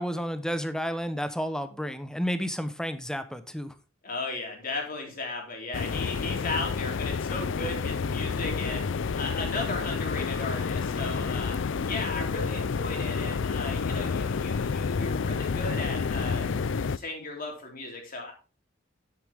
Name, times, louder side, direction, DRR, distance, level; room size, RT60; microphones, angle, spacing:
voice 1, 0.0-3.7, equal, 5° left, 0.9 m, -31 dB
voice 2, 4.0-18.3, left 3 dB, 45° left, 3.3 m, -36 dB
sound 1, 5.7-17.0, left 5 dB, 65° left, 0.5 m, -29 dB
10.0 x 8.3 x 3.5 m
head